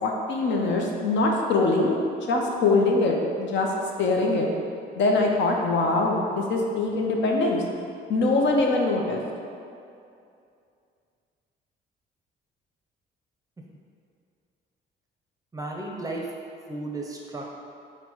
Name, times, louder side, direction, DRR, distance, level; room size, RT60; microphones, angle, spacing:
voice 1, 0.0-2.0 2.3-3.7 4.0-4.5 5.0-7.6 8.1-9.2, left 3 dB, 70° left, 0 dB, 0.6 m, -23 dB
voice 2, 15.5-16.2 16.7-17.5, right 2 dB, 15° right, -1 dB, 0.5 m, -34 dB
3.9 x 2.1 x 4.4 m, 2.5 s
cardioid pair, 90°, 20 cm